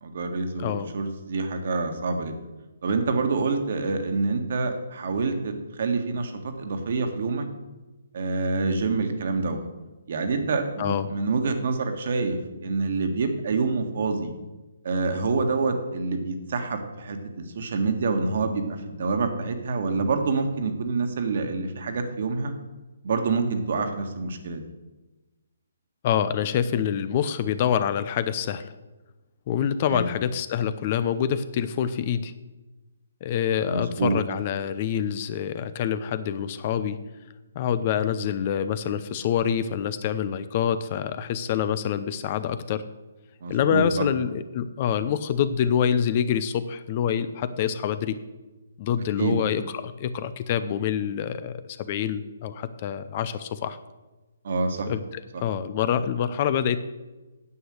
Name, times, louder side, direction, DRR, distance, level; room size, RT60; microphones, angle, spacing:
voice 1, 0.0-2.4 2.8-6.3 6.6-7.4 8.1-9.6 10.1-14.3 14.8-22.5 23.0-24.6 29.8-30.1 33.7-34.2 43.4-44.1 49.2-49.4 54.4-54.9 55.3-55.4, right 4 dB, 50° right, 6 dB, 1.6 m, -27 dB
voice 2, 26.0-28.7 29.5-32.3 33.2-37.0 37.6-42.8 43.5-48.2 48.8-51.5 51.8-53.8 54.9-55.0 55.4-56.8, left 8 dB, 35° left, 13 dB, 0.6 m, -26 dB
9.9 x 7.9 x 6.4 m, 1.1 s
figure-of-eight pair, 135°, 0 cm